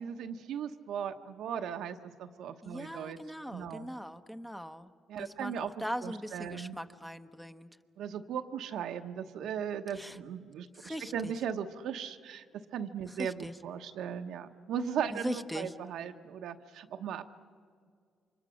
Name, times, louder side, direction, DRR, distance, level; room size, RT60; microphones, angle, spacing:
voice 1, 0.0-3.2 3.5-3.9 5.1-5.7 6.0-6.8 8.0-17.2, right 8 dB, 80° right, 7 dB, 1.0 m, -37 dB
voice 2, 2.6-4.9 5.2-7.7 9.9-10.2 10.8-11.3 13.1-13.5 15.2-15.7, equal, 5° left, 9 dB, 0.9 m, -40 dB
29.0 x 25.0 x 6.4 m, 2.2 s
cardioid pair, 90°, 0 cm